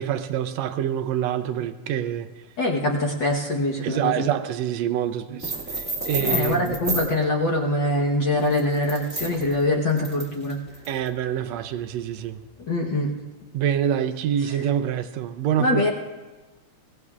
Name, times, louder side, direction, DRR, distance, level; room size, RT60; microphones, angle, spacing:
voice 1, 0.0-2.3 3.8-6.8 10.9-12.4 13.5-15.9, right 10 dB, 75° right, 10 dB, 1.8 m, -26 dB
voice 2, 2.6-4.4 6.2-10.6 12.6-13.1 15.6-15.9, left 1 dB, 50° left, -3 dB, 1.5 m, -23 dB
sound 1, 5.4-7.2 8.4-11.1, right 2 dB, 5° right, 1.4 m, -31 dB
23.0 x 18.5 x 2.5 m, 1.2 s
omnidirectional pair, 3.3 m